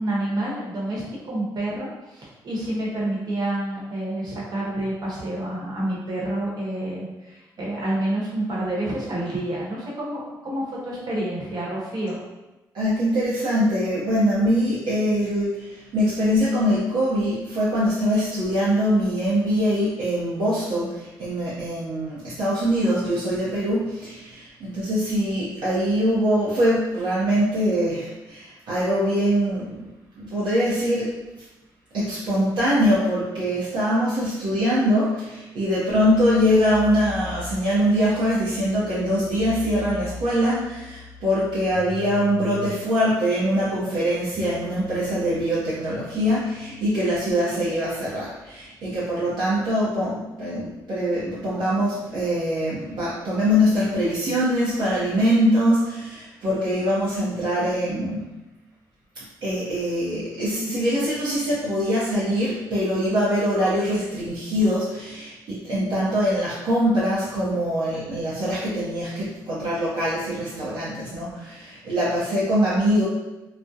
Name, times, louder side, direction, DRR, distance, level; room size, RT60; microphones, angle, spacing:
voice 1, 0.0-12.2 60.6-60.7, right 1 dB, 55° right, -5 dB, 1.0 m, -28 dB
voice 2, 12.7-29.9 30.2-31.2 31.9-58.3 59.4-73.0, equal, 70° right, -9 dB, 0.6 m, -23 dB
sound 1, 35.9-47.3, left 2 dB, 60° left, 0.4 m, -41 dB
2.3 x 2.0 x 2.7 m, 1.0 s
cardioid pair, 80°, 8 cm